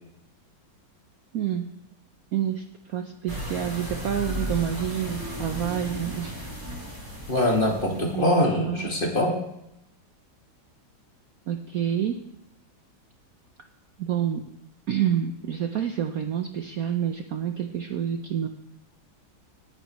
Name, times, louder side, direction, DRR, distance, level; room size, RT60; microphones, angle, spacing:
voice 1, 1.3-1.7 2.3-6.3 8.1-8.9 11.5-12.2 14.0-14.4 14.9-18.5, right 9 dB, 60° right, 6 dB, 1.0 m, -28 dB
sound 1, 3.3-8.2, equal, 10° right, 2.6 m, -35 dB
voice 2, 7.3-9.4, left 1 dB, 25° left, 0 dB, 1.9 m, -23 dB
18.5 x 10.0 x 3.1 m, 0.86 s
omnidirectional pair, 2.1 m